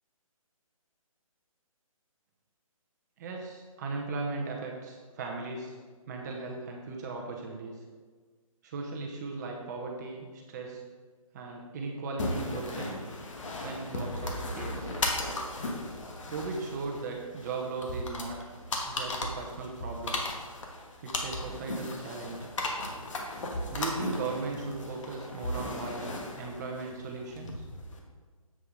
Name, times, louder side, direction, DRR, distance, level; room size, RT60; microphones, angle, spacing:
voice 1, 3.2-5.8 6.1-7.8 8.6-10.8 11.3-12.9 13.6-15.0 16.3-18.4 18.8-20.2 21.0-22.5 23.7-27.6, right 3 dB, 30° right, 0 dB, 0.8 m, -37 dB
sound 1, 12.2-28.0, left 2 dB, 60° left, 1.4 m, -36 dB
7.7 x 6.7 x 3.8 m, 1.5 s
figure-of-eight pair, 145°, 18 cm